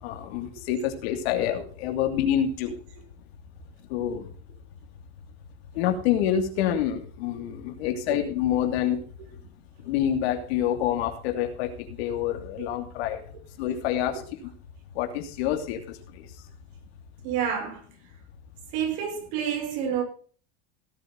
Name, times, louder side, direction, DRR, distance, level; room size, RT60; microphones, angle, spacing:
voice 1, 0.0-2.7 3.9-4.3 5.7-9.0 9.9-13.2 13.6-14.2 14.9-16.0, left 10 dB, 70° left, 5 dB, 2.9 m, -27 dB
voice 2, 17.2-17.8 18.7-20.0, right 8 dB, 60° right, 4 dB, 5.4 m, -28 dB
17.0 x 8.1 x 4.1 m, 0.41 s
supercardioid pair, 130°, 33 cm